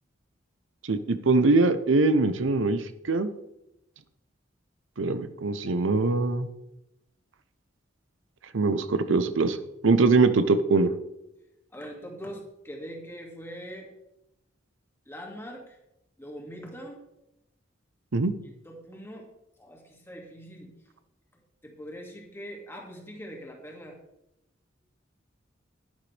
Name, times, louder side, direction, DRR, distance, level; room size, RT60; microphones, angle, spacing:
voice 1, 0.9-3.3 5.0-6.5 8.5-9.6 9.8-10.9 18.1-18.3, right 3 dB, 75° right, 11 dB, 0.7 m, -22 dB
voice 2, 11.7-13.9 15.1-15.8 16.2-17.0 18.4-19.3 19.6-20.7 21.6-24.0, equal, 10° left, 0 dB, 2.1 m, -42 dB
11.5 x 10.5 x 3.3 m, 0.88 s
head